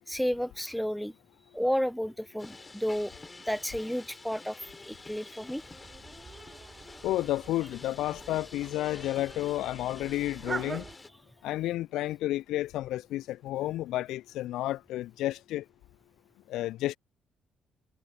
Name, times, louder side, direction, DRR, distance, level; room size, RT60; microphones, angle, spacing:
voice 1, 0.1-1.1 1.5-3.1 3.5-5.6, equal, ahead, 1.0 m, -31 dB
sound 1, 2.4-11.1, left 3 dB, 25° left, 5.5 m, -49 dB
sound 2, 5.6-10.9, right 4 dB, 35° right, 1.3 m, -44 dB
voice 2, 7.0-10.8 11.4-15.6 16.5-17.0, left 15 dB, 65° left, 0.5 m, -31 dB
figure-of-eight pair, 45°, 0 cm